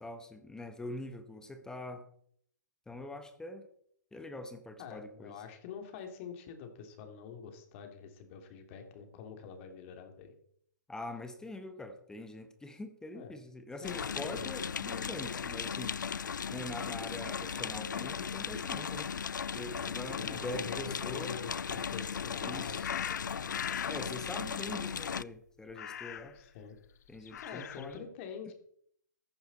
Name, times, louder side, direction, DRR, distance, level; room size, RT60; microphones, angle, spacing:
voice 1, 0.0-2.1 2.9-3.7 4.1-5.4 10.9-15.9 16.5-19.1 19.5-21.3 22.4-23.0 23.9-26.4 27.1-28.1, left 1 dB, 5° left, 8 dB, 1.1 m, -44 dB
voice 2, 4.8-10.3 13.1-13.3 13.8-14.5 19.7-19.8 20.1-23.7 26.3-26.8 27.1-28.5, left 7 dB, 45° left, 6 dB, 2.8 m, -46 dB
sound 1, 13.8-25.2, left 7 dB, 85° left, 0.4 m, -37 dB
sound 2, 22.8-24.0 25.7-26.4 27.2-28.0, left 9 dB, 60° left, 1.0 m, -40 dB
14.5 x 10.5 x 4.2 m, 0.66 s
hypercardioid pair, 125°, 10 cm